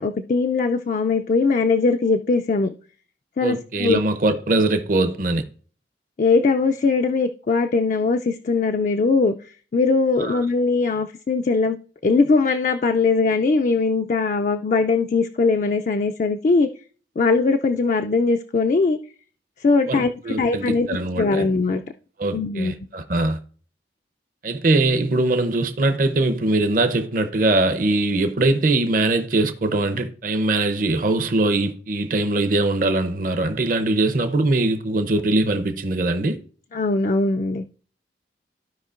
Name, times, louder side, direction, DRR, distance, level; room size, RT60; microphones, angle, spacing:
voice 1, 0.0-2.7 3.4-4.0 6.2-9.4 9.7-11.8 12.0-16.7 17.2-19.0 19.6-21.8 22.3-22.7 36.7-37.6, left 4 dB, 45° left, 0.3 m, -20 dB
voice 2, 3.4-5.4 10.2-10.4 19.9-21.5 22.2-23.4 24.4-36.4, right 2 dB, 50° right, 0.7 m, -22 dB
14.5 x 5.1 x 2.5 m
head